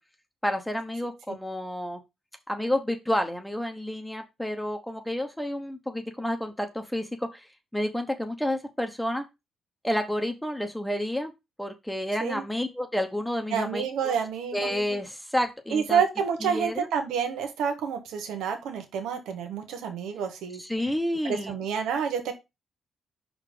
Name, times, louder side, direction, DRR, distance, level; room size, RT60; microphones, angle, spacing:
voice 1, 0.4-2.0 2.5-9.2 9.8-11.3 11.6-14.1 14.5-16.0 16.4-16.9 20.6-21.5, left 1 dB, 5° left, 5 dB, 1.0 m, -30 dB
voice 2, 13.5-14.7 15.7-20.6 21.2-22.3, right 7 dB, 85° right, 5 dB, 1.4 m, -28 dB
5.6 x 3.9 x 5.0 m, 0.23 s
cardioid pair, 90°, 0 cm